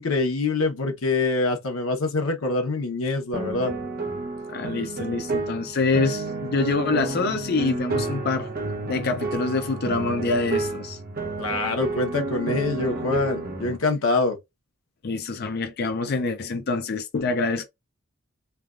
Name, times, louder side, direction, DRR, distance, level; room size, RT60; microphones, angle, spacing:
voice 1, 0.0-3.7 11.4-14.4, left 3 dB, 90° left, 0.9 m, -25 dB
sound 1, 3.3-13.8, right 3 dB, 45° right, 0.8 m, -30 dB
voice 2, 4.5-8.5 8.8-11.0 15.0-17.7, left 3 dB, 50° left, 0.5 m, -26 dB
3.2 x 2.3 x 2.4 m
head